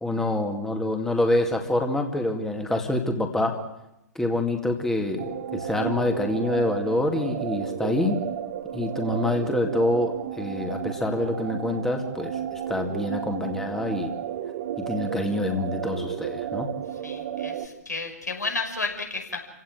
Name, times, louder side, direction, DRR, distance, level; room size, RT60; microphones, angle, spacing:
voice 1, 0.0-3.6 4.2-8.2 8.7-12.4 12.7-14.1 14.8-16.7, left 1 dB, 5° left, 4 dB, 2.2 m, -26 dB
sound 1, 5.2-17.7, right 10 dB, 45° right, 1.9 m, -32 dB
voice 2, 17.0-19.4, left 3 dB, 80° left, 2 dB, 5.9 m, -32 dB
29.0 x 17.0 x 9.1 m, 0.88 s
figure-of-eight pair, 115°, 9 cm